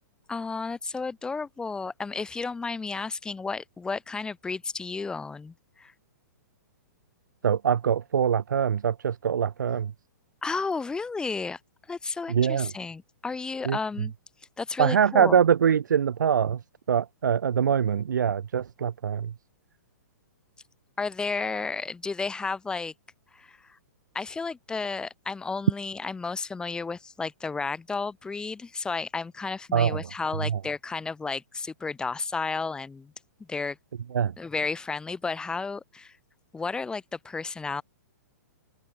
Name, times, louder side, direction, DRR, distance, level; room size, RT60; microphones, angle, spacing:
voice 1, 0.3-5.9 10.4-11.6 11.9-14.1 14.6-15.4 21.0-22.9 23.3-23.6 24.1-33.1 33.4-33.8 34.4-36.2 36.5-37.8, left 4 dB, 10° left, 1.0 m, -32 dB
voice 2, 7.4-9.9 12.3-12.7 13.7-14.1 14.8-16.6 16.9-19.3 29.7-30.0 30.4-30.6 34.1-34.3, right 8 dB, 80° right, 1.7 m, -24 dB
open air
hypercardioid pair, 135°, 10 cm